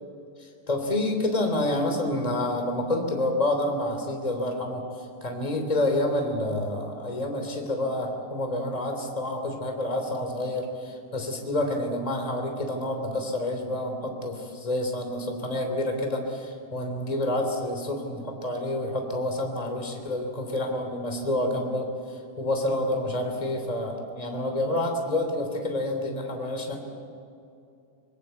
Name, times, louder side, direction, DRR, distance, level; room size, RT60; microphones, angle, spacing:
voice 1, 0.4-26.8, left 1 dB, 10° left, 3 dB, 3.0 m, -28 dB
24.5 x 22.5 x 8.2 m, 2.6 s
omnidirectional pair, 3.5 m